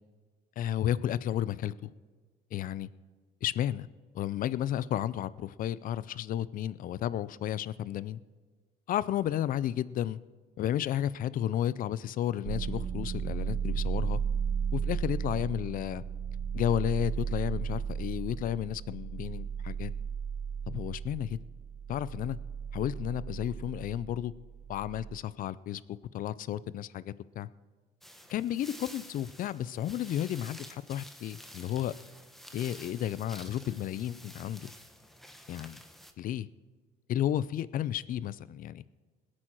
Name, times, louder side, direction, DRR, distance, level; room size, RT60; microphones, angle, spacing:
voice 1, 0.6-1.9 2.5-2.9 3.4-3.9 4.1-8.2 8.9-10.2 10.6-14.2 14.7-16.0 16.5-19.9 20.7-21.4 21.9-22.4 22.7-24.3 24.7-25.8 26.1-27.5 28.3-31.9 32.5-34.7 35.5-35.8 36.2-36.5 37.1-38.8, left 11 dB, 55° left, 18 dB, 0.5 m, -32 dB
sound 1, 12.4-25.2, right 7 dB, 55° right, 1.3 m, -35 dB
sound 2, 28.0-36.1, equal, ahead, 1.1 m, -50 dB
20.5 x 8.7 x 4.5 m, 1.4 s
cardioid pair, 110°, 17 cm